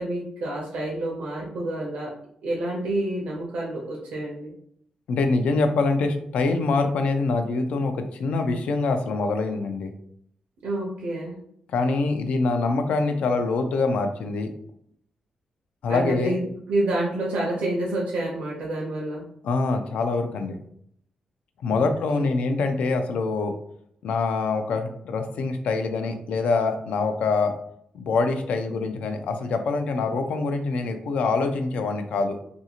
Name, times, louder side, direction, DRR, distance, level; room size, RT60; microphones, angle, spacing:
voice 1, 0.0-2.1 2.4-4.5 10.6-11.3 15.9-19.2 21.7-22.3, right 1 dB, 90° right, -4 dB, 0.6 m, -28 dB
voice 2, 5.1-7.9 8.2-9.9 11.7-14.5 15.8-16.3 19.4-20.6 21.6-23.5 24.0-27.5 28.0-32.4, left 3 dB, 80° left, 6 dB, 0.4 m, -24 dB
2.6 x 2.4 x 2.8 m, 0.70 s
cardioid pair, 115°, 2 cm